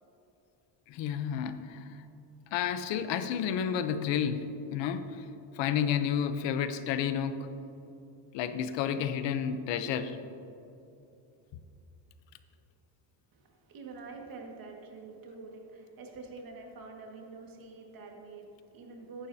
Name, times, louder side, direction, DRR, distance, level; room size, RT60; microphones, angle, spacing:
voice 1, 0.9-2.0 2.5-5.3 5.5-7.5 8.3-10.2, left 8 dB, 80° left, 10 dB, 0.9 m, -31 dB
voice 2, 13.3-19.3, right 3 dB, 50° right, 1 dB, 2.0 m, -46 dB
14.5 x 11.0 x 2.8 m, 2.8 s
cardioid pair, 135°, 43 cm